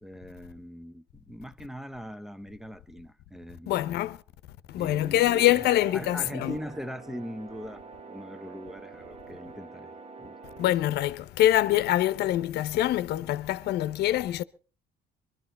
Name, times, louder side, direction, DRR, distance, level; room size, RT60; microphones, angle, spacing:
voice 1, 0.0-3.9 4.8-9.9 10.2-10.4, equal, ahead, 0.8 m, -41 dB
voice 2, 3.7-4.2 4.7-6.6 10.6-14.4, left 13 dB, 75° left, 0.9 m, -24 dB
sound 1, 5.2-10.8, right 4 dB, 40° right, 1.1 m, -46 dB
22.5 x 12.5 x 4.3 m
cardioid pair, 110°, 17 cm